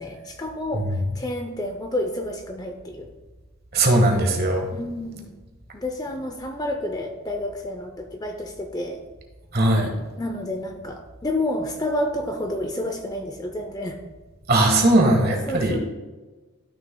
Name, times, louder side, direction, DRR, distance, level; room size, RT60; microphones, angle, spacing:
voice 1, 0.0-3.1 4.7-5.4 5.7-9.0 10.2-14.0 15.5-15.8, left 1 dB, 15° left, 5 dB, 0.5 m, -30 dB
voice 2, 3.7-4.7 9.5-9.9 14.5-15.8, right 1 dB, 45° right, 2 dB, 1.4 m, -19 dB
12.5 x 6.5 x 2.2 m, 1.2 s
head